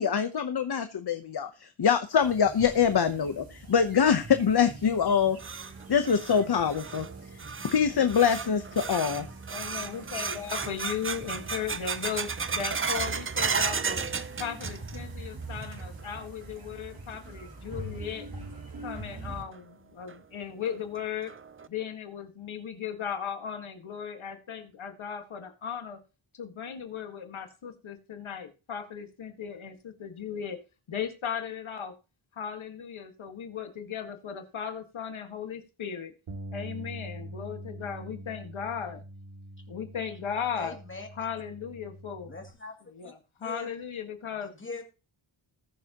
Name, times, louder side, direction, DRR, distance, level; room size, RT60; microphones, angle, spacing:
voice 1, 0.0-5.4 5.9-7.1 7.7-9.3, left 7 dB, 55° left, 9 dB, 0.9 m, -24 dB
sound 1, 2.2-19.4, right 2 dB, 45° right, 3.0 m, -44 dB
sound 2, 5.0-15.2 15.4-16.0 16.4-16.5 17.3-17.4 19.0-19.1 19.5-19.6 20.1-20.2 20.7-20.8 21.3-21.7, right 5 dB, 30° right, 0.5 m, -34 dB
voice 2, 9.5-14.0 14.4-18.3 18.8-21.3 21.7-26.0 26.3-30.6 30.9-32.0 32.3-36.1 36.5-39.0 39.7-40.8 41.2-42.3 42.9-44.5, left 7 dB, 85° left, 6 dB, 1.8 m, -37 dB
Bass guitar, 36.3-42.5, right 1 dB, 85° right, 2.5 m, -44 dB
voice 3, 40.5-41.1 42.3-42.7 43.4-43.7 44.4-44.8, left 3 dB, 25° left, 3 dB, 2.6 m, -41 dB
20.0 x 6.9 x 2.9 m, 0.31 s
wide cardioid pair, 180°, 47 cm